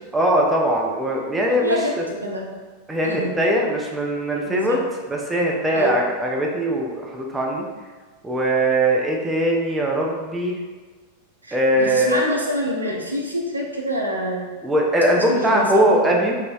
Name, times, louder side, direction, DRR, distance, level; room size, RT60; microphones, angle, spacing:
voice 1, 0.1-1.8 2.9-4.8 5.1-7.6 8.2-10.6 11.5-12.3 14.6-16.3, right 1 dB, 10° right, -1 dB, 0.4 m, -20 dB
voice 2, 1.5-1.9 2.2-2.5 3.0-3.3 4.4-4.8 5.7-6.0 11.4-14.5 15.1-16.1, equal, 80° right, -1 dB, 0.4 m, -26 dB
3.8 x 2.0 x 2.2 m, 1.4 s
figure-of-eight pair, 90°, 0 cm